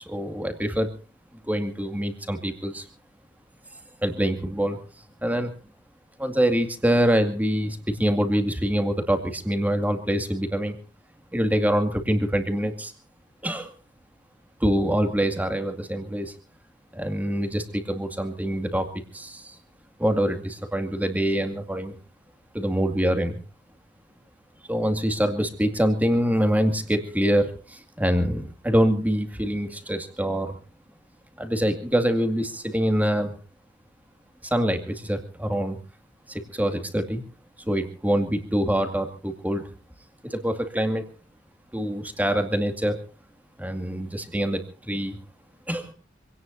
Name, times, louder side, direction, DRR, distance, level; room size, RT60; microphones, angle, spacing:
voice 1, 0.1-1.0 1.5-2.8 4.0-4.8 5.2-5.5 6.2-10.8 11.3-12.9 13.4-13.7 14.6-16.3 16.9-18.9 19.1-19.6 20.0-21.9 22.5-23.4 24.7-30.6 31.4-33.3 34.4-35.8 36.3-37.2 37.6-39.7 40.2-41.1 41.7-43.0 43.6-45.2 45.7-45.9, equal, 10° right, 7 dB, 2.2 m, -25 dB
26.0 x 17.5 x 2.7 m, 0.36 s
head